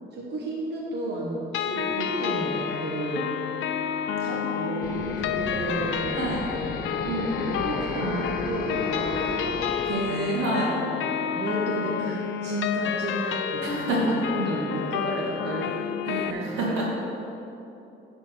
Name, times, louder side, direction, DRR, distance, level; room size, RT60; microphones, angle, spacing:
voice 1, 0.1-3.2 4.2-6.2 6.6-7.0 7.5-9.3 11.0-13.8 14.3-15.8 16.1-17.0, right 2 dB, 60° right, -4 dB, 1.3 m, -32 dB
sound 1, 1.5-16.3, left 8 dB, 80° left, 0.5 m, -30 dB
voice 2, 1.7-2.1 4.2-4.8 6.1-6.5 7.0-7.7 9.8-10.9 13.6-14.1 16.2-16.9, right 1 dB, 85° right, -3 dB, 2.1 m, -29 dB
sound 2, 4.8-9.9, left 3 dB, 45° left, 1.2 m, -33 dB
10.0 x 4.2 x 6.2 m, 2.8 s
cardioid pair, 90°, 20 cm